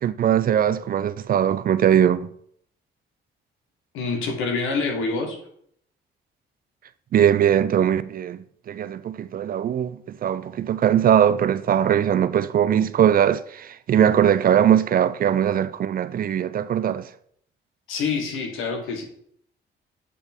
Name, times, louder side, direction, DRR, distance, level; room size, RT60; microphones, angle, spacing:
voice 1, 0.0-2.3 7.1-17.1, right 9 dB, 45° right, 0.4 m, -20 dB
voice 2, 3.9-5.4 17.9-19.0, left 4 dB, 90° left, 1.6 m, -26 dB
8.3 x 3.5 x 4.4 m
cardioid pair, 90°, 20 cm